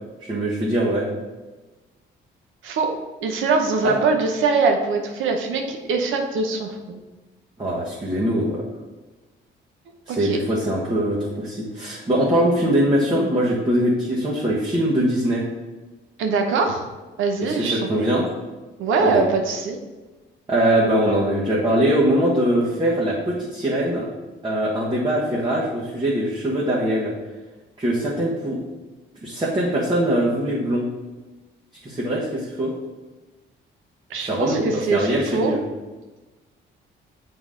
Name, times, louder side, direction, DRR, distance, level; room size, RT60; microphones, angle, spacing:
voice 1, 0.2-1.1 3.8-4.0 7.6-8.6 10.1-15.4 17.4-18.3 19.0-19.2 20.5-24.1 24.4-27.1 27.8-28.6 29.2-30.9 31.8-32.7 34.2-35.6, right 1 dB, 25° right, -6 dB, 1.4 m, -22 dB
voice 2, 2.6-2.9 3.2-7.0 10.1-10.4 16.2-16.8 17.2-18.1 18.8-19.8 34.1-35.5, right 4 dB, 85° right, 4 dB, 0.8 m, -22 dB
7.1 x 4.0 x 3.8 m, 1.2 s
cardioid pair, 90°, 20 cm